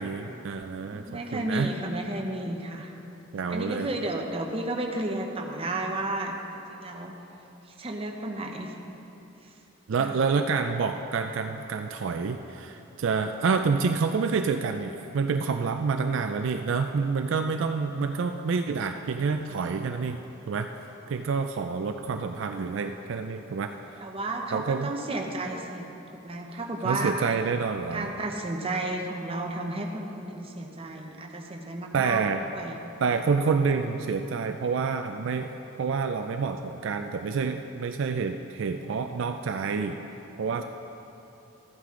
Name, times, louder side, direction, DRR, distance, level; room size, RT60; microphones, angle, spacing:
voice 1, 0.0-1.7 3.3-3.9 9.9-20.2 20.5-20.7 21.1-23.7 24.5-24.9 26.8-28.1 31.9-32.5 33.0-40.0 40.4-40.6, right 5 dB, 60° right, 6 dB, 0.4 m, -28 dB
voice 2, 0.9-2.9 3.5-7.1 7.8-8.7 10.0-10.1 24.0-27.4 27.9-32.2 32.5-32.8, right 2 dB, 30° right, 2 dB, 0.8 m, -32 dB
13.0 x 9.0 x 3.7 m, 3.0 s
head